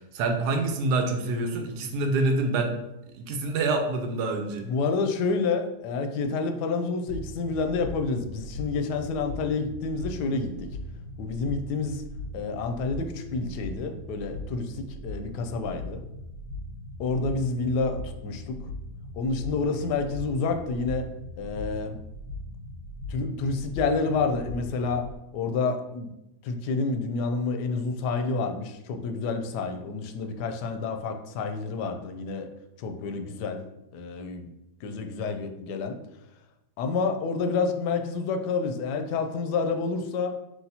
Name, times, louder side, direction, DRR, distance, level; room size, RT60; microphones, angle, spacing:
voice 1, 0.1-2.8 3.1-4.7, right 2 dB, 85° right, 5 dB, 1.2 m, -26 dB
voice 2, 4.7-10.7 11.2-12.0 12.3-16.0 17.0-18.6 19.1-21.1 21.4-22.0 23.1-25.1 25.3-26.1 26.4-32.5 32.8-33.6 33.9-34.5 34.8-36.0 36.8-40.3, left 4 dB, 90° left, 6 dB, 1.2 m, -29 dB
sound 1, 7.1-25.2, left 1 dB, 55° left, 0.5 m, -39 dB
4.8 x 3.3 x 2.8 m, 0.89 s
omnidirectional pair, 1.7 m